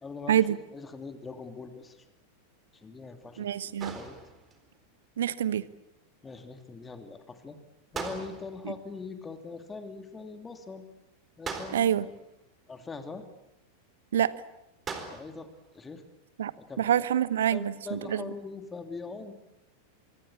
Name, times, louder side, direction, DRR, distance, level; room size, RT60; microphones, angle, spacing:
voice 1, 0.0-2.1 2.7-4.1 6.2-7.6 7.9-10.9 11.4-12.2 12.7-13.2 15.1-16.0 16.6-16.9 17.5-19.3, left 4 dB, 15° left, 8 dB, 2.7 m, -42 dB
voice 2, 3.4-4.0 5.2-5.7 11.7-12.0 14.1-14.3 16.4-16.5 16.8-18.2, right 10 dB, 60° right, 17 dB, 1.1 m, -26 dB
sound 1, 3.8-4.7 7.9-8.8 11.4-12.2 14.9-15.5, right 5 dB, 20° right, 4.2 m, -39 dB
25.0 x 24.5 x 8.6 m, 0.87 s
figure-of-eight pair, 90°, 0 cm